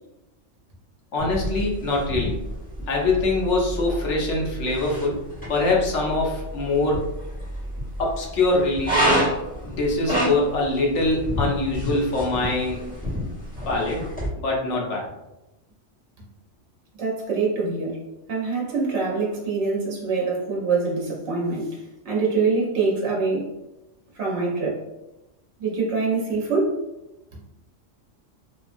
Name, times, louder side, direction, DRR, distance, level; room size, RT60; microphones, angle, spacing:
voice 1, 1.1-2.4 2.9-5.2 5.5-7.1 8.0-9.2 9.6-12.9 13.7-14.1 14.4-15.0, left 2 dB, 70° left, -2 dB, 1.0 m, -23 dB
sound 1, 1.2-14.3, equal, 5° left, 1.1 m, -29 dB
voice 2, 17.0-18.0 18.3-23.5 24.1-24.8 25.6-26.8 27.3-27.4, right 4 dB, 60° right, -3 dB, 1.0 m, -24 dB
2.8 x 2.3 x 2.5 m, 0.96 s
omnidirectional pair, 1.3 m